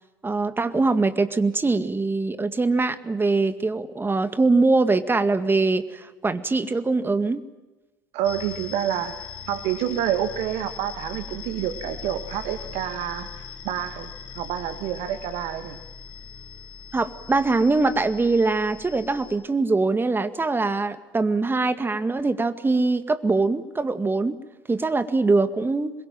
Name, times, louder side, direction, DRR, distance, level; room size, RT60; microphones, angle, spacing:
voice 1, 0.2-7.4 16.9-24.4 24.7-25.9, right 3 dB, 20° right, 10 dB, 2.0 m, -22 dB
voice 2, 8.1-14.1 14.4-15.8, right 11 dB, 65° right, 8 dB, 2.0 m, -28 dB
sound 1, 8.2-19.4, left 6 dB, 50° left, 3.7 m, -40 dB
27.5 x 22.0 x 9.1 m, 1.1 s
hypercardioid pair, 65°, 11 cm